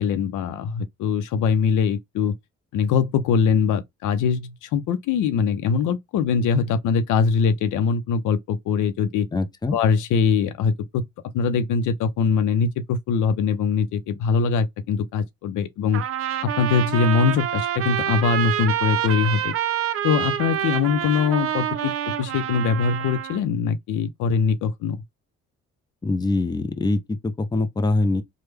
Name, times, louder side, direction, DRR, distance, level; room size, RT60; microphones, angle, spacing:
voice 1, 0.0-2.3 2.7-9.3 9.7-11.0 11.3-16.0 16.4-19.5 20.0-21.9 22.2-25.0, left 6 dB, 80° left, 0.6 m, -22 dB
voice 2, 9.3-9.8 26.0-28.2, left 2 dB, 15° left, 0.5 m, -23 dB
Trumpet, 15.9-23.4, right 10 dB, 50° right, 0.5 m, -27 dB
3.2 x 2.2 x 3.3 m
cardioid pair, 90°, 30 cm